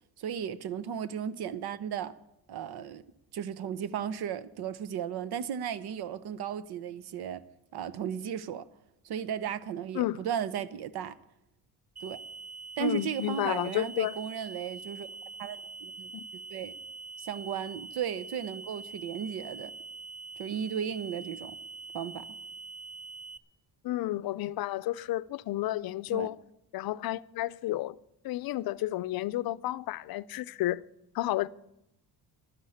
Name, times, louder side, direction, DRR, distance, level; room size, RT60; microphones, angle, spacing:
voice 1, 0.2-2.1 2.5-3.0 3.3-7.4 7.7-8.7 9.0-11.1 12.0-12.2 12.8-15.1 15.4-16.1 16.5-16.7 17.2-19.7 20.4-21.6 21.9-22.2 26.1-26.3, right 8 dB, 75° right, 0.9 m, -35 dB
sound 1, 12.0-23.4, right 4 dB, 20° right, 0.6 m, -44 dB
voice 2, 12.8-14.2 16.1-16.2 23.8-26.4 26.7-28.0 28.2-30.8 31.1-31.5, left 15 dB, 65° left, 0.5 m, -31 dB
12.0 x 9.9 x 8.6 m
cardioid pair, 130°, 39 cm